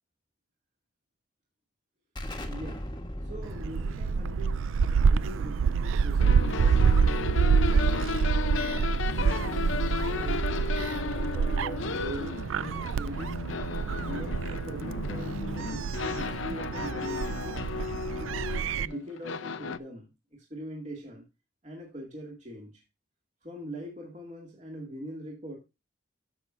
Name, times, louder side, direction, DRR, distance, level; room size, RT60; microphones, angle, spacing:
Explosion, 2.2-7.6, equal, 20° left, 1.2 m, -40 dB
voice 1, 2.5-2.9 3.2-7.8 8.5-9.7 10.0-13.4 14.1-17.6 18.2-20.1 20.5-21.2 21.6-22.8 23.4-25.6, equal, 35° right, 2.2 m, -42 dB
Gull seagull, 3.4-18.9, right 6 dB, 80° right, 0.4 m, -27 dB
sound 1, 6.2-19.8, left 5 dB, 80° left, 0.6 m, -34 dB
13.5 x 6.0 x 2.5 m
head